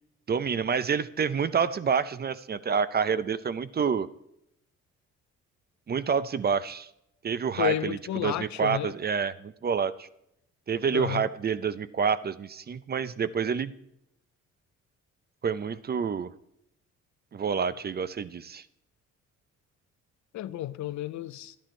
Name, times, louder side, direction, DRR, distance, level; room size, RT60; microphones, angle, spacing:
voice 1, 0.3-4.1 5.9-6.9 7.2-10.1 10.7-13.7 15.4-16.3 17.3-18.6, right 6 dB, 35° right, 0.5 m, -28 dB
voice 2, 7.6-9.0 10.9-11.3 20.3-21.6, left 12 dB, 70° left, 0.6 m, -31 dB
11.5 x 10.5 x 4.3 m
cardioid pair, 90°, 30 cm